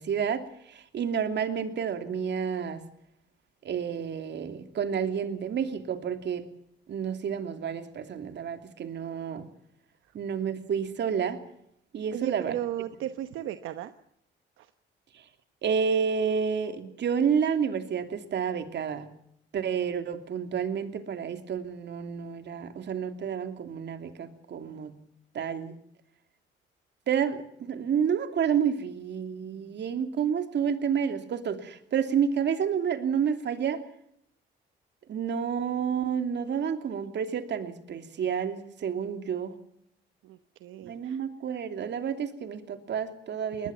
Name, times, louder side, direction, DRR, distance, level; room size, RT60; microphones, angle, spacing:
voice 1, 0.0-2.8 3.6-6.4 6.9-9.5 10.1-11.4 11.9-12.5 15.6-19.1 19.5-25.0 25.3-25.8 27.1-33.8 35.1-39.5 40.8-43.7, right 7 dB, 60° right, 8 dB, 2.9 m, -30 dB
voice 2, 12.1-13.9 14.6-14.7 40.2-41.2 43.6-43.7, right 12 dB, 85° right, 10 dB, 1.1 m, -35 dB
21.5 x 20.0 x 7.1 m, 0.73 s
cardioid pair, 90°, 20 cm